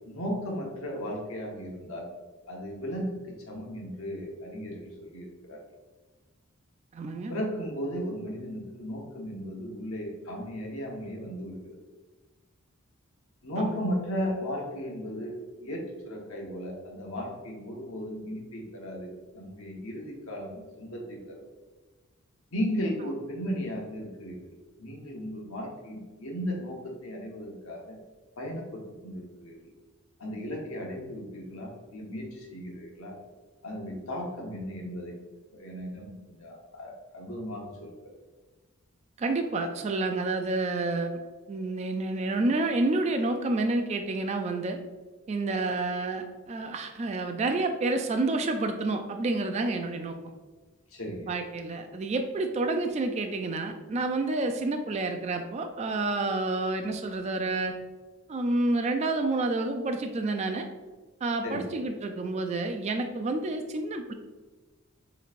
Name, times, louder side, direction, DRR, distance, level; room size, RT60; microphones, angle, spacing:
voice 1, 0.1-2.1 2.5-5.6 7.3-11.8 13.4-21.4 22.5-24.5 24.8-28.0 28.4-29.6 30.2-33.2 33.6-35.2 35.5-37.9 50.9-51.3 61.4-61.7, equal, 75° left, -1 dB, 1.1 m, -36 dB
voice 2, 6.9-7.3 13.6-13.7 39.2-41.2 41.5-44.8 45.3-50.2 51.3-57.7 58.3-60.7 61.2-64.1, right 2 dB, 30° right, 5 dB, 0.3 m, -29 dB
6.8 x 3.1 x 2.5 m, 1.3 s
head